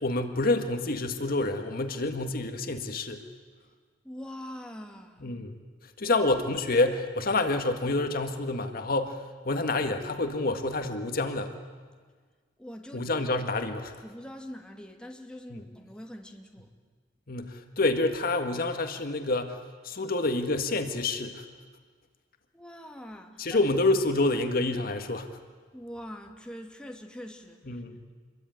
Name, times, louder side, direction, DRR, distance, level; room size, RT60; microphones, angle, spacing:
voice 1, 0.0-3.2 5.2-5.6 6.0-11.5 12.9-13.9 15.5-15.6 17.3-19.6 19.8-21.4 23.4-25.3 27.7-28.1, left 2 dB, 55° left, 7 dB, 1.8 m, -28 dB
voice 2, 4.0-5.3 12.6-13.1 14.0-16.7 22.5-23.6 25.7-27.8, equal, 5° left, 2 dB, 2.5 m, -43 dB
27.5 x 23.0 x 9.4 m, 1.5 s
head